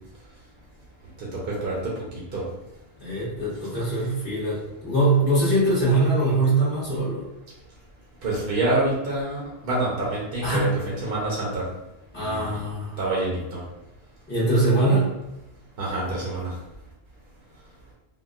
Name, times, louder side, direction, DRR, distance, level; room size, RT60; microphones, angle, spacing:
voice 1, 1.2-1.9 2.3-2.4 8.2-11.6 12.2-12.5 13.0-13.6 15.8-16.5, right 2 dB, 55° right, -5 dB, 0.8 m, -27 dB
voice 2, 3.0-7.3 10.4-10.7 12.1-13.0 14.3-15.1, right 2 dB, 10° left, -9 dB, 0.8 m, -22 dB
3.8 x 2.1 x 2.3 m, 0.93 s
omnidirectional pair, 1.2 m